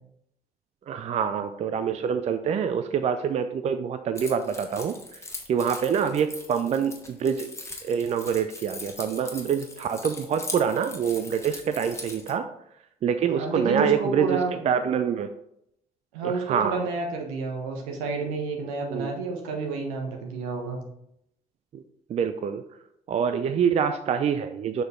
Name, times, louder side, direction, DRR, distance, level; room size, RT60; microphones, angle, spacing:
voice 1, 0.9-5.2 5.5-7.5 7.8-12.5 13.0-14.4 14.6-15.3 16.2-16.8 18.9-19.1 21.7-21.8 22.1-22.6 23.1-24.8, right 7 dB, 35° right, 9 dB, 0.4 m, -26 dB
Keys jangling, 4.2-12.3, left 2 dB, 15° left, 1.3 m, -40 dB
voice 2, 13.4-14.5 16.1-20.8, right 4 dB, 70° right, 1 dB, 1.2 m, -29 dB
6.5 x 4.6 x 3.6 m, 0.75 s
figure-of-eight pair, 45°, 19 cm